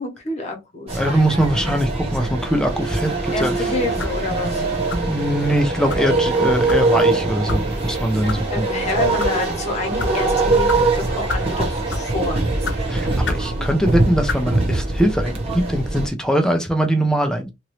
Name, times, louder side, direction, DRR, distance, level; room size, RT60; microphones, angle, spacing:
voice 1, 0.0-1.0 3.3-4.6 8.5-12.4, left 2 dB, 40° left, 1.1 m, -28 dB
voice 2, 0.9-3.6 5.0-8.6 12.9-17.5, right 1 dB, 5° left, 0.6 m, -21 dB
sound 1, 0.9-16.1, right 2 dB, 35° right, 1.0 m, -22 dB
sound 2, 2.1-13.7, right 4 dB, 60° right, 1.3 m, -36 dB
sound 3, 4.0-4.2 4.9-5.2 5.9-6.1 6.7-6.8 7.5-7.6 8.3-8.4 9.0-9.3 10.0-10.1 10.7-10.8 11.3-11.5 11.9-12.1 12.6-12.8 13.2-13.5 14.2-14.4, left 3 dB, 90° left, 0.7 m, -27 dB
2.9 x 2.6 x 3.1 m
head